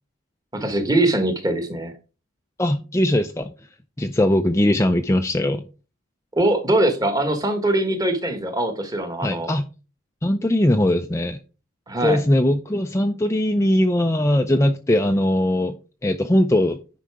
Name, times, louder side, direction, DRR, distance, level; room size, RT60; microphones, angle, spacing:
voice 1, 0.5-1.9 6.3-9.5 11.9-12.2, right 1 dB, 15° right, 1.4 m, -22 dB
voice 2, 2.6-3.5 4.0-5.6 9.2-9.7 10.2-11.4 12.0-15.8 16.0-16.8, left 1 dB, 15° left, 0.4 m, -20 dB
10.0 x 5.5 x 4.8 m
head